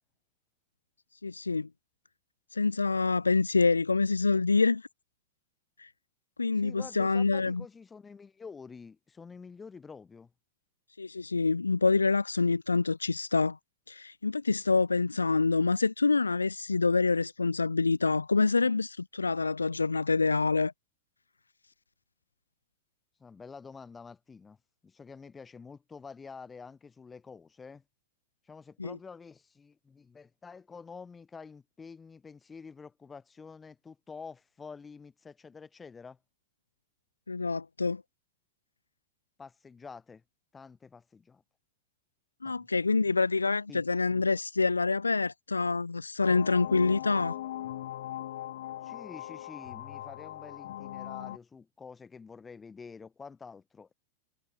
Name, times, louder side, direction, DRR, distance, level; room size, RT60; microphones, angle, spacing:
voice 1, 1.2-1.7 2.5-4.9 5.8-5.9 6.4-7.6 11.0-13.6 13.9-20.7 28.8-29.0 37.3-38.0 42.4-47.4, left 4 dB, 80° left, 0.5 m, -26 dB
voice 2, 6.6-10.3 23.2-24.6 24.8-27.8 28.4-36.2 39.4-40.2 40.5-41.4 42.4-42.7 43.7-43.8 48.8-53.9, left 5 dB, 15° left, 2.6 m, -48 dB
sound 1, 46.2-51.4, left 13 dB, 60° left, 1.3 m, -40 dB
figure-of-eight pair, 90°, 0 cm